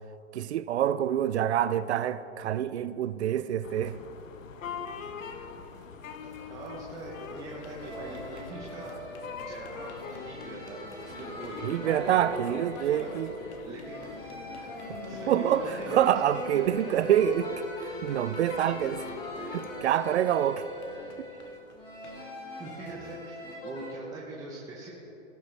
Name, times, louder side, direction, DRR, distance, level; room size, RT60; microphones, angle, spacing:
voice 1, 0.3-4.0 11.6-13.3 15.3-17.5 17.8-19.1 19.5-20.7, right 10 dB, 60° right, 0.5 m, -26 dB
sound 1, 3.6-19.8, left 5 dB, 90° left, 1.1 m, -43 dB
voice 2, 6.5-9.1 9.4-13.1 13.7-14.2 14.6-14.8 15.1-16.1 22.6-24.9, right 2 dB, 10° right, 0.7 m, -43 dB
sound 2, 7.1-24.0, left 3 dB, 60° left, 1.7 m, -56 dB
sound 3, 7.8-23.9, right 1 dB, 10° left, 1.8 m, -42 dB
18.0 x 8.1 x 3.3 m
hypercardioid pair, 155°, 38 cm